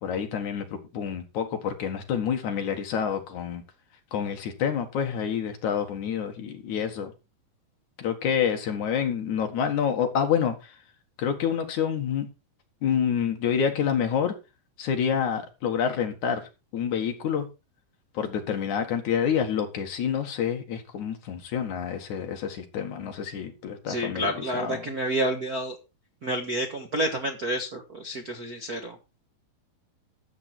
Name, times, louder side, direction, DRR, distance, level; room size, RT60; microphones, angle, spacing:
voice 1, 0.0-3.6 4.1-7.1 8.0-10.8 11.2-12.3 12.8-14.4 14.8-16.4 16.7-17.5 18.1-24.9, left 8 dB, 60° left, 2.8 m, -28 dB
voice 2, 23.9-25.8 26.2-28.9, right 1 dB, 50° right, 1.1 m, -29 dB
13.0 x 8.1 x 4.5 m
omnidirectional pair, 4.1 m